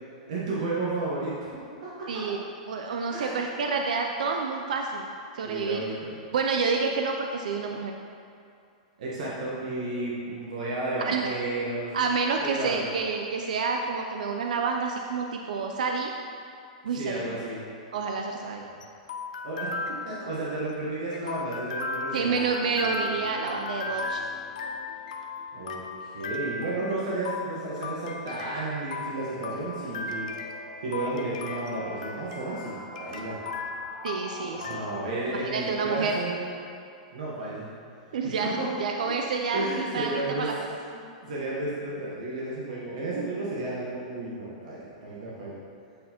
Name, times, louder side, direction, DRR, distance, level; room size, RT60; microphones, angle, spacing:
voice 1, 0.3-2.2 3.1-3.4 5.4-6.1 9.0-11.9 12.4-12.9 16.9-17.6 19.4-22.4 25.5-25.8 26.1-30.3 30.8-33.4 34.5-36.4 37.1-37.7 38.2-38.7 39.5-40.5 40.9-45.6, right 2 dB, 70° right, -6 dB, 1.1 m, -32 dB
voice 2, 2.1-2.4 2.7-5.1 5.3-6.0 6.3-7.9 11.0-11.3 11.9-16.1 16.8-17.3 17.9-18.6 22.1-24.2 34.0-34.9 35.4-36.2 38.1-39.6 39.9-40.5, right 5 dB, 90° right, 2 dB, 0.4 m, -29 dB
sound 1, 18.1-34.8, left 3 dB, 80° left, 0.5 m, -37 dB
sound 2, 22.6-36.0, equal, 40° right, 1.3 m, -46 dB
8.4 x 4.1 x 2.9 m, 2.4 s
supercardioid pair, 165°, 4 cm